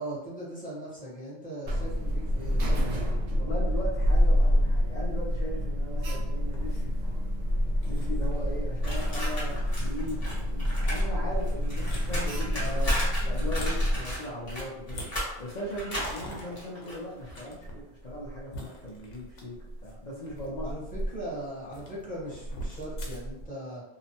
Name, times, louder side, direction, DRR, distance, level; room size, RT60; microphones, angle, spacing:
voice 1, 0.0-2.8 12.5-13.0 20.6-23.8, right 1 dB, 10° left, -8 dB, 0.9 m, -39 dB
Alarm, 1.6-14.0, equal, 90° right, 0.9 m, -27 dB
voice 2, 3.4-7.0 7.9-20.7, equal, 50° left, -7 dB, 0.6 m, -39 dB
sound 1, 6.3-23.5, right 1 dB, 85° left, 1.0 m, -43 dB
sound 2, 8.8-11.1 11.3-17.4, equal, 35° left, 1.0 m, -36 dB
2.9 x 2.0 x 2.8 m, 0.94 s
omnidirectional pair, 1.1 m